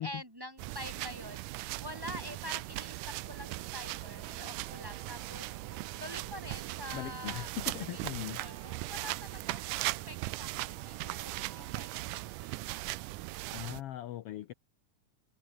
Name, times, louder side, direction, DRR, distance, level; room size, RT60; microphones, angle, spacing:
voice 1, 0.0-5.5 6.0-7.5 7.9-8.0 8.3-12.9, left 1 dB, 5° right, 3.0 m, -46 dB
sound 1, 0.6-13.8, right 19 dB, 85° right, 2.2 m, -39 dB
sound 2, 3.1-12.6, right 5 dB, 60° right, 5.3 m, -56 dB
voice 2, 6.9-8.4 13.5-14.5, left 13 dB, 70° left, 1.5 m, -39 dB
omnidirectional pair, 3.6 m